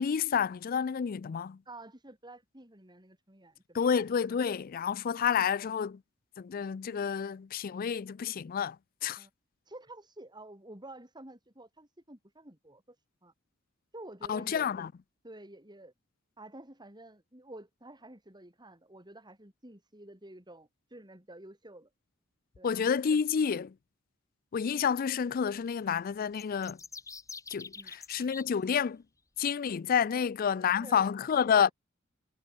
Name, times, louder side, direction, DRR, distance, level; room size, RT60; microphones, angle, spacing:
voice 1, 0.0-1.6 3.7-6.0 6.4-8.8 9.0-9.2 14.3-14.9 22.6-23.7 24.5-26.8 27.5-29.0 29.4-31.7, left 7 dB, 45° left, 0.4 m, -29 dB
voice 2, 1.7-3.8 9.2-9.3 9.7-13.0 13.2-13.3 13.9-14.9 15.2-15.9 16.4-21.9 22.6-22.7 27.7-27.9 30.1-31.7, right 2 dB, 20° right, 5.9 m, -50 dB
sound 1, 26.3-28.4, left 4 dB, 15° left, 1.3 m, -45 dB
head